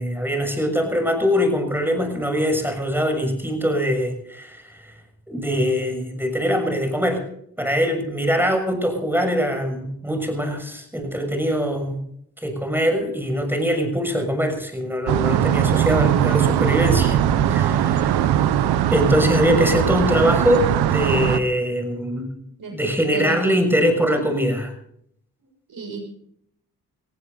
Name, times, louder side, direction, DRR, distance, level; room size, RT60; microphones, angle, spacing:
voice 1, 0.0-4.9 5.3-7.2 7.6-12.0 12.4-17.2 17.5-18.3 18.9-22.3 22.7-24.7, equal, 5° right, 6 dB, 6.6 m, -22 dB
sound 1, 15.1-21.4, right 10 dB, 90° right, 1.0 m, -20 dB
voice 2, 22.6-23.6 25.7-26.0, right 3 dB, 60° right, 5 dB, 6.7 m, -32 dB
20.5 x 15.5 x 4.0 m, 0.69 s
supercardioid pair, 45°, 38 cm